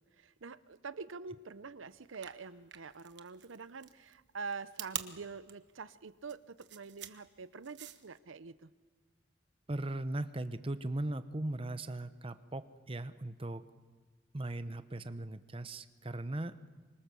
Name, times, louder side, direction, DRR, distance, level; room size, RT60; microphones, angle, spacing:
voice 1, 0.0-8.7, right 4 dB, 90° right, 15 dB, 0.8 m, -46 dB
sound 1, 2.0-8.2, right 11 dB, 60° right, 1.2 m, -46 dB
voice 2, 9.7-13.6 14.3-16.7, right 1 dB, 30° right, 11 dB, 0.8 m, -38 dB
26.5 x 25.0 x 7.0 m, 1.4 s
head